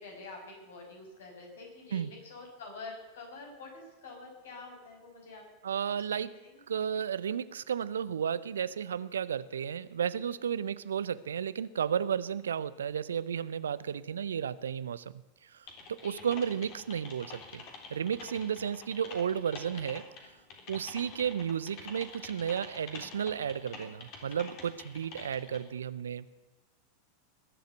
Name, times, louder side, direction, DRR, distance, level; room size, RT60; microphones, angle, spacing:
voice 1, 0.0-5.4 6.1-6.3 16.0-16.3 21.2-21.3, left 3 dB, 65° left, 1 dB, 6.1 m, -47 dB
voice 2, 5.6-6.3 6.7-17.6 17.9-20.0 20.7-26.3, right 8 dB, 70° right, 17 dB, 0.6 m, -33 dB
Typing, 15.7-25.6, left 4 dB, 45° left, 3.5 m, -47 dB
20.5 x 7.9 x 8.1 m, 1.2 s
figure-of-eight pair, 85°, 0 cm